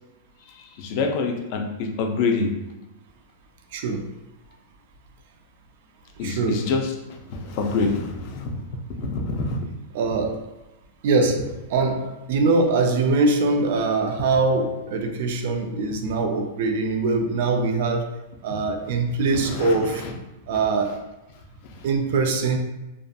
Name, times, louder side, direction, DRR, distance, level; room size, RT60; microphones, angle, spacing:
voice 1, 0.5-2.5 6.2-8.6 9.0-9.7 18.5-18.9 19.3-20.1 20.5-20.6 21.7-21.9, left 4 dB, 45° left, 3 dB, 0.4 m, -27 dB
voice 2, 3.7-4.1 6.2-6.7 9.9-10.6 11.0-20.0 20.5-21.0 21.8-22.6, right 3 dB, 60° right, 4 dB, 0.3 m, -23 dB
2.6 x 2.4 x 2.2 m, 1.0 s
supercardioid pair, 160°, 0 cm